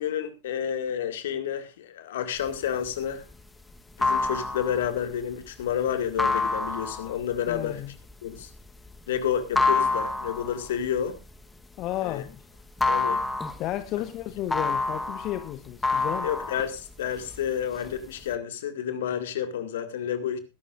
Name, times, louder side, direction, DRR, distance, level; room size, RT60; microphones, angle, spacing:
voice 1, 0.0-3.3 4.0-7.8 8.2-8.5 9.1-11.2 12.0-12.2 12.9-13.2 16.2-20.4, left 9 dB, 60° left, 2.1 m, -30 dB
sound 1, 2.5-12.3 12.6-17.4 17.7-18.3, left 3 dB, 10° left, 1.2 m, -28 dB
voice 2, 7.5-7.9 11.8-12.4 13.6-16.3, left 13 dB, 35° left, 0.9 m, -32 dB
20.5 x 11.5 x 2.6 m
figure-of-eight pair, 90°, 0 cm